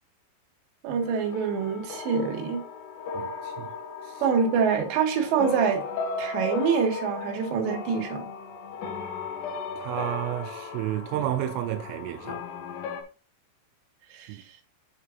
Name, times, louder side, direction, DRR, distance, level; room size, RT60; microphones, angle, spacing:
voice 1, 0.8-2.6 4.2-5.8 6.2-8.3 14.1-14.4, right 6 dB, 70° right, 3.5 m, -25 dB
sound 1, 1.0-13.0, left 4 dB, 80° left, 1.8 m, -36 dB
voice 2, 3.1-3.7 4.0-4.2 9.8-12.4 14.3-14.4, right 13 dB, 85° right, 3.2 m, -31 dB
9.7 x 6.4 x 2.4 m
omnidirectional pair, 5.6 m